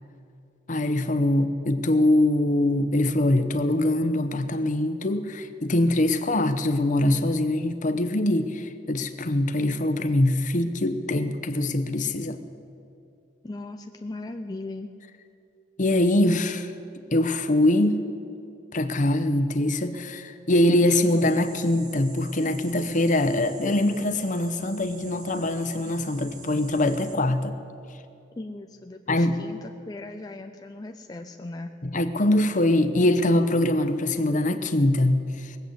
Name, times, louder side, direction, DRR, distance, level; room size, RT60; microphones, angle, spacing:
voice 1, 0.7-12.4 15.8-16.7 17.1-18.0 18.7-27.6 29.1-29.4 31.8-35.6, left 1 dB, 45° left, 10 dB, 0.8 m, -23 dB
voice 2, 13.4-14.9 28.4-31.7, left 2 dB, 20° left, 5 dB, 0.4 m, -38 dB
sound 1, 21.0-27.2, right 4 dB, 45° right, 1.5 m, -46 dB
20.0 x 8.0 x 8.1 m, 2.7 s
head